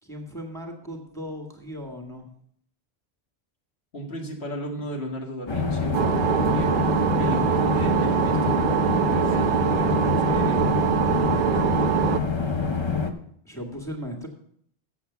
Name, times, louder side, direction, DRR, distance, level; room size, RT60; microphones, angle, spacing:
voice 1, 0.0-2.3 13.5-14.3, equal, 5° left, 0 dB, 1.8 m, -37 dB
voice 2, 3.9-10.8, equal, 65° left, 1 dB, 2.1 m, -35 dB
sound 1, 5.5-13.1, left 4 dB, 30° left, 0.7 m, -26 dB
sound 2, 5.9-12.2, right 10 dB, 60° right, 0.6 m, -23 dB
7.6 x 7.3 x 7.0 m, 0.66 s
omnidirectional pair, 1.2 m